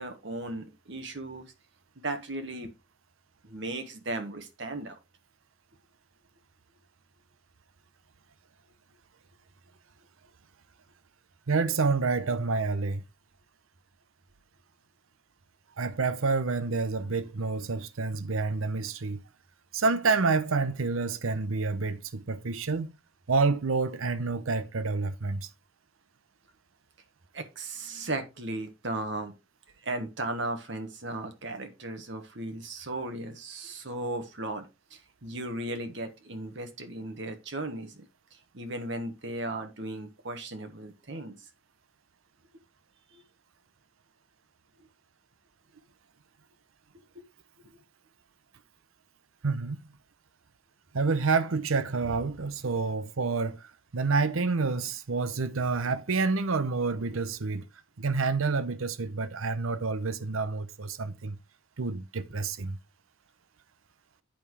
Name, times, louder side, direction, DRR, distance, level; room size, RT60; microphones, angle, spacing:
voice 1, 0.0-1.5 2.0-2.7 3.4-5.0 27.3-29.3 29.8-38.0 38.5-41.3 43.1-43.2 47.1-47.2, right 2 dB, 60° right, 1.4 m, -36 dB
voice 2, 11.5-13.0 15.8-19.2 19.7-22.9 23.3-25.5 49.4-49.8 50.9-57.7 58.0-61.4 61.8-62.8, right 4 dB, 90° right, 0.8 m, -28 dB
8.9 x 5.7 x 4.7 m
head